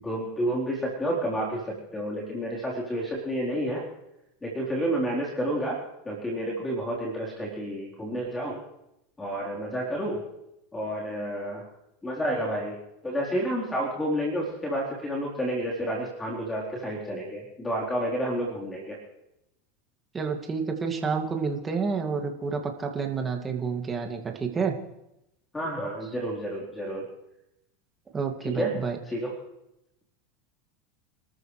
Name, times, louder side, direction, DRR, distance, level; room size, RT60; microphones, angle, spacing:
voice 1, 0.0-3.8 4.4-5.8 6.0-8.6 9.2-10.3 10.7-11.7 12.0-12.8 13.0-19.0 25.5-27.0 28.4-28.8 29.1-29.3, equal, 15° left, -3 dB, 4.0 m, -30 dB
voice 2, 20.1-24.8 28.1-29.0, right 5 dB, 20° right, 3 dB, 2.4 m, -29 dB
29.0 x 13.5 x 3.3 m, 0.87 s
supercardioid pair, 115°, 0 cm